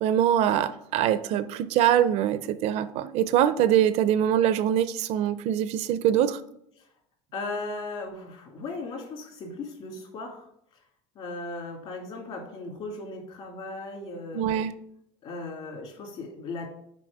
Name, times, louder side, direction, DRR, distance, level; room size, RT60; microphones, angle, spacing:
voice 1, 0.0-6.4 14.3-14.7, right 10 dB, 60° right, 14 dB, 0.5 m, -23 dB
voice 2, 7.3-10.5 11.2-14.5 15.2-16.7, left 3 dB, 50° left, 1 dB, 2.2 m, -37 dB
6.2 x 4.8 x 4.7 m, 0.74 s
cardioid pair, 140°, 13 cm